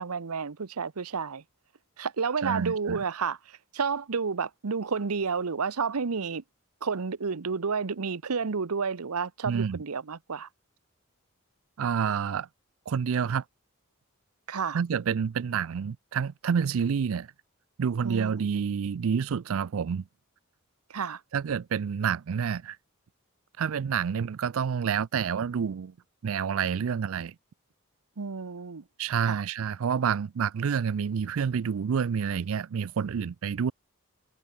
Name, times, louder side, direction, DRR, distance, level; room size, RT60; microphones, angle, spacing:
voice 1, 0.0-1.4 2.0-6.4 6.8-10.5 14.5-14.8 18.0-18.4 20.9-21.2 28.2-28.8 29.2-29.4, right 5 dB, 90° right, 0.8 m, -31 dB
voice 2, 2.4-3.0 9.5-9.8 11.8-12.5 12.9-13.4 14.7-17.3 17.8-20.0 21.3-22.8 23.6-25.9 26.2-27.3 29.0-33.7, right 7 dB, 70° right, 0.4 m, -28 dB
head